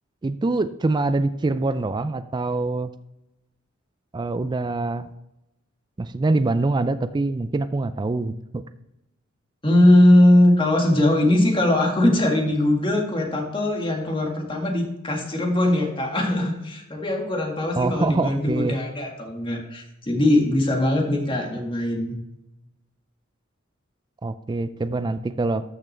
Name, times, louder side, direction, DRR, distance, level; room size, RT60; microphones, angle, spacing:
voice 1, 0.2-2.9 4.1-5.1 6.0-8.6 17.8-18.8 24.2-25.6, right 2 dB, 20° right, 11 dB, 0.3 m, -24 dB
voice 2, 9.6-22.2, left 1 dB, 25° left, 1 dB, 1.8 m, -20 dB
13.0 x 6.1 x 3.3 m, 0.91 s
head